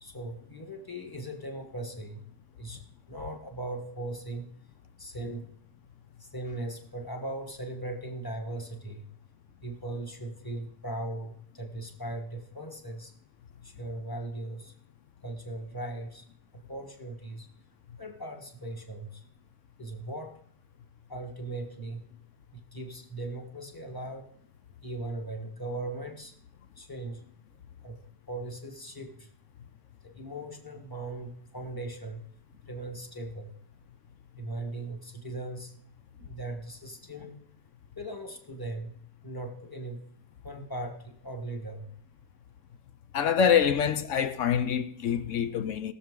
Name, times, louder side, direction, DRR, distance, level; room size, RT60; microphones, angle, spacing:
voice 1, 0.0-2.2 2.6-2.8 3.1-4.5 5.0-5.5 6.2-9.1 9.6-13.1 13.6-14.7 15.2-16.2 16.5-17.5 18.0-19.2 19.8-20.4 21.1-22.1 22.5-24.3 24.8-26.3 26.7-27.3 27.8-28.0 28.3-29.3 30.0-32.2 32.6-33.5 34.4-35.7 36.2-37.4 38.0-40.0 40.4-41.8, right 2 dB, 15° left, 1.2 m, -39 dB
voice 2, 43.1-45.9, left 7 dB, 65° left, 0.8 m, -25 dB
19.5 x 7.0 x 3.7 m
omnidirectional pair, 1.9 m